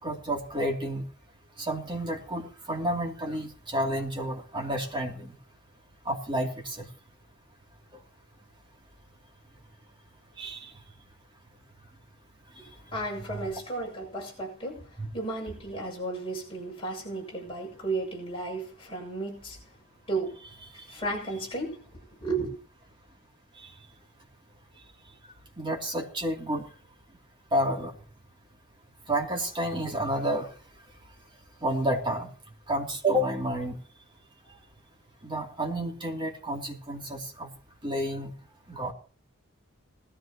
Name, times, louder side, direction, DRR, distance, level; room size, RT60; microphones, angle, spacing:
voice 1, 0.0-1.0 1.6-5.3 6.0-6.9 10.4-10.7 13.3-13.5 15.0-15.1 25.6-26.7 27.5-27.9 29.1-30.5 31.6-32.3 32.7-33.8 35.2-37.5 37.8-38.3 38.7-38.9, right 1 dB, 20° right, 2.9 m, -30 dB
voice 2, 12.6-19.6 20.1-20.4 20.7-22.5, right 2 dB, 25° left, 7.3 m, -34 dB
20.0 x 14.0 x 3.0 m
head